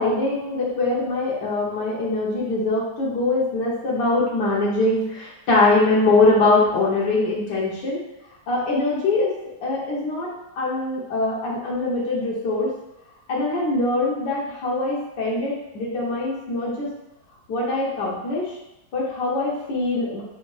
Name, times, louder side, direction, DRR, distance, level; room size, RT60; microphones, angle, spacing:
voice 1, 0.0-8.0 8.5-9.3 9.6-12.7 13.3-16.9 17.5-18.5 18.9-20.2, left 2 dB, 85° left, -6 dB, 1.5 m, -22 dB
4.2 x 2.8 x 3.0 m, 0.90 s
omnidirectional pair, 1.8 m